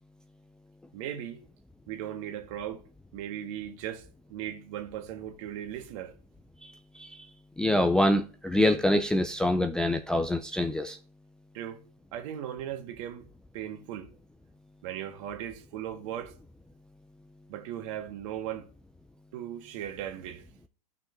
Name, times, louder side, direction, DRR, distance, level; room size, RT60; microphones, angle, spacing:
voice 1, 0.9-1.4 1.9-2.8 3.1-4.0 4.3-6.1 11.5-11.8 12.1-13.3 13.5-14.1 14.8-16.3 17.5-18.7 19.3-20.4, right 10 dB, 50° right, 1.6 m, -37 dB
voice 2, 6.6-7.2 7.6-11.0, left 1 dB, 5° left, 0.4 m, -26 dB
13.0 x 5.9 x 2.7 m
hypercardioid pair, 125°, 20 cm